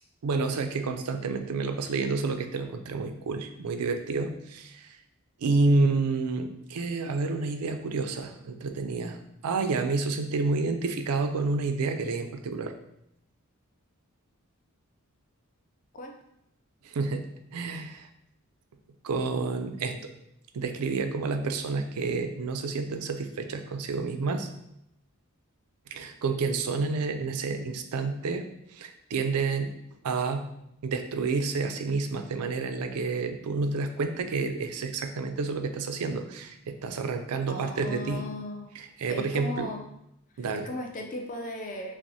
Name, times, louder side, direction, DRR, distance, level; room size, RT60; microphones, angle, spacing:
voice 1, 0.2-4.9 5.4-9.2 9.4-12.7 16.8-17.2 17.5-18.1 19.0-20.1 20.5-24.5 25.9-28.4 28.7-29.7 30.0-30.5 30.8-38.2 39.0-39.7 40.4-40.7, right 3 dB, 85° right, 7 dB, 0.4 m, -29 dB
voice 2, 37.5-38.7 39.1-39.8 40.3-41.9, left 1 dB, 35° left, 3 dB, 0.5 m, -37 dB
5.8 x 2.0 x 2.7 m, 0.80 s
head